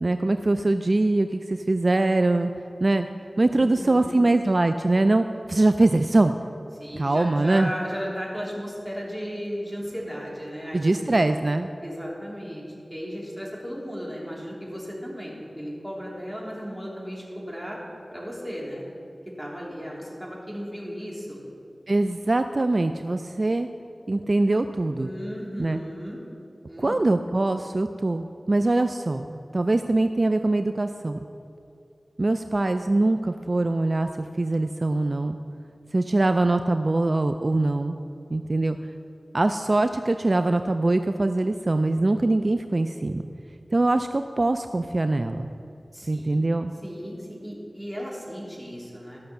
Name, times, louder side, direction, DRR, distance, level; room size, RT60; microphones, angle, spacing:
voice 1, 0.0-2.5 2.8-3.1 3.4-6.3 6.9-7.7 10.7-11.7 21.9-23.7 24.1-25.1 25.6-25.8 26.8-31.2 32.2-34.1 34.4-35.4 35.9-38.0 38.3-38.8 39.3-43.2 43.7-45.5 46.1-46.7, right 2 dB, 55° right, 8 dB, 0.4 m, -23 dB
voice 2, 3.5-4.3 6.8-11.2 11.8-17.8 18.1-18.8 19.4-21.4 25.0-26.2 26.7-27.2 45.9-46.4 46.8-49.2, equal, 5° right, -4 dB, 3.4 m, -35 dB
13.5 x 6.4 x 6.9 m, 2.7 s
wide cardioid pair, 45°, 0 cm